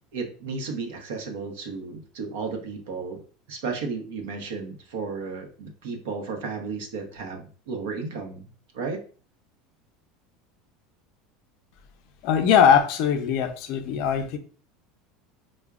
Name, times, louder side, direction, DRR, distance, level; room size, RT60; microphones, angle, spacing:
voice 1, 0.1-3.2 3.5-8.5 8.7-9.0, right 4 dB, 85° right, 0.7 m, -33 dB
voice 2, 12.2-14.4, left 8 dB, 50° left, 0.4 m, -21 dB
4.6 x 2.1 x 2.3 m
supercardioid pair, 170°, 0 cm